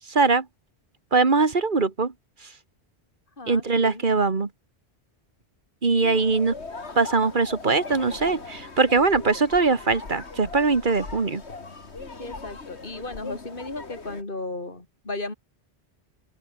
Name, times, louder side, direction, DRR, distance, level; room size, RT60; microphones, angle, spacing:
voice 1, 0.1-0.5 1.1-2.1 3.5-4.5 5.8-6.5 7.0-11.4, right 4 dB, 45° right, 1.9 m, -21 dB
voice 2, 3.4-4.0 5.9-6.2 12.2-15.3, left 2 dB, 50° left, 3.8 m, -35 dB
sound 1, 6.1-14.2, left 3 dB, 75° left, 2.8 m, -39 dB
open air
omnidirectional pair, 1.1 m